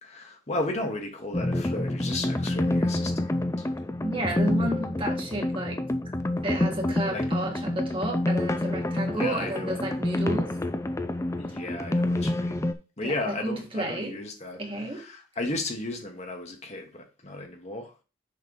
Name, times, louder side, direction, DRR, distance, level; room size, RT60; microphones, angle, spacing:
voice 1, 0.0-3.7 7.1-7.2 9.2-9.8 11.4-12.6 13.0-17.9, left 2 dB, 40° left, 1.4 m, -34 dB
sound 1, 1.3-12.7, left 1 dB, 15° left, 0.4 m, -28 dB
voice 2, 4.0-5.8 6.4-10.5 13.0-14.1 14.6-15.0, right 1 dB, 30° right, 1.6 m, -31 dB
6.6 x 3.3 x 5.3 m
head